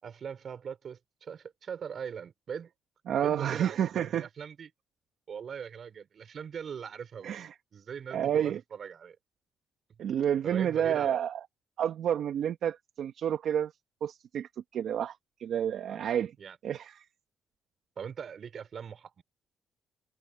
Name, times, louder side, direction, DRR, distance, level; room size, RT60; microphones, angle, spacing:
voice 1, 0.0-2.7 3.2-4.7 5.3-7.5 7.7-9.2 10.4-11.2 15.9-16.0 16.4-16.6 18.0-19.2, right 7 dB, 55° right, 5.4 m, -41 dB
voice 2, 3.1-4.3 7.2-7.5 8.1-8.6 10.0-11.4 11.8-13.7 14.0-16.3 16.6-17.0, right 9 dB, 70° right, 1.4 m, -30 dB
cardioid pair, 90°, 0 cm